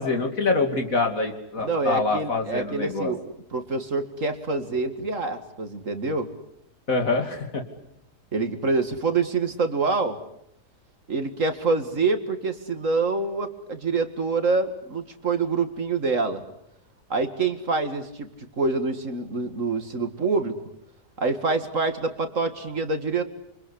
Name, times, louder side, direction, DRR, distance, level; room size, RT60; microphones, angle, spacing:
voice 1, 0.0-3.1 6.9-7.6, left 3 dB, 55° left, 5 dB, 3.2 m, -25 dB
voice 2, 1.6-3.2 3.5-6.3 8.3-10.2 11.1-16.4 17.1-18.3 18.6-20.6 21.2-23.2, right 3 dB, 50° right, 8 dB, 2.3 m, -26 dB
28.0 x 24.5 x 8.4 m, 0.75 s
omnidirectional pair, 1.8 m